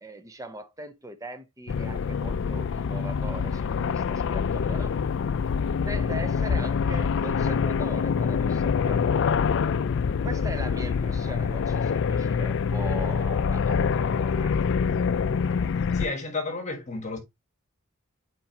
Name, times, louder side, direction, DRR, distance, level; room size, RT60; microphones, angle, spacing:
voice 1, 0.0-4.9 5.9-9.1 10.2-14.5, right 2 dB, 15° right, 0.6 m, -40 dB
sound 1, 1.7-16.1, left 6 dB, 60° left, 0.4 m, -25 dB
voice 2, 15.9-17.2, left 3 dB, 35° left, 1.5 m, -32 dB
8.4 x 4.4 x 2.8 m
head